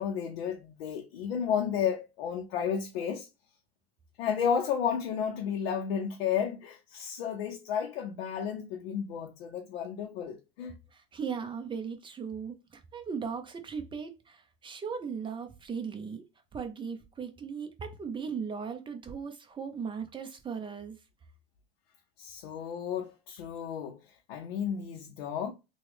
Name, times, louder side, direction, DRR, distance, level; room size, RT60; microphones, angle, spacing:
voice 1, 0.0-3.3 4.2-10.7 22.2-25.5, left 7 dB, 75° left, 0.6 m, -32 dB
voice 2, 10.9-16.2 16.5-21.0, right 6 dB, 15° right, 0.6 m, -38 dB
3.0 x 2.2 x 3.3 m
supercardioid pair, 115°, 31 cm